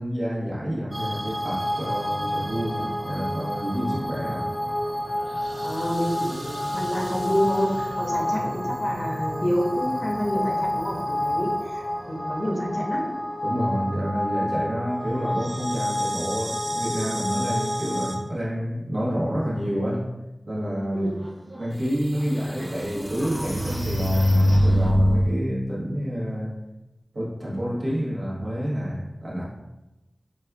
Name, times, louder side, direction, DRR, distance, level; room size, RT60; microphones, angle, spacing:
voice 1, 0.0-4.5 13.4-20.1 20.5-21.1 21.6-26.5 27.1-29.4, equal, 60° right, -5 dB, 0.9 m, -28 dB
sound 1, 0.9-18.2, left 1 dB, 20° right, 1.3 m, -29 dB
voice 2, 5.6-13.1 20.9-21.1, equal, 45° left, -2 dB, 0.8 m, -28 dB
sound 2, 21.5-21.6 22.2-25.3, equal, 35° right, 0.6 m, -22 dB
4.1 x 2.3 x 2.3 m, 1.0 s
wide cardioid pair, 55°, 0 cm